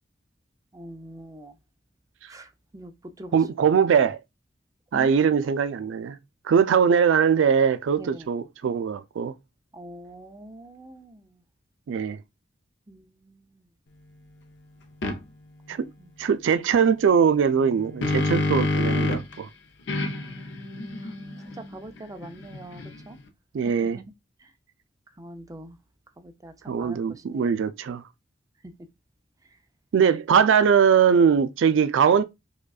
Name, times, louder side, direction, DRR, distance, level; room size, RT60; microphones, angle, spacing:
voice 1, 0.7-1.5 2.3-3.4 4.9-5.1 5.4-5.6 8.0-8.3 9.7-11.3 12.9-13.4 16.0-16.1 20.1-21.1 21.6-23.2 23.6-24.1 24.4-24.5 25.2-25.8 26.2-27.5, right 1 dB, 20° right, 0.5 m, -44 dB
voice 2, 3.3-4.2 4.9-6.2 6.4-9.3 11.9-12.2 15.7-15.9 16.2-19.5 23.5-24.0 26.7-28.0 29.9-32.2, right 7 dB, 75° right, 0.3 m, -21 dB
sound 1, 15.0-15.2 17.6-19.4 19.9-23.2, left 2 dB, 65° left, 0.7 m, -28 dB
4.9 x 2.3 x 2.3 m
head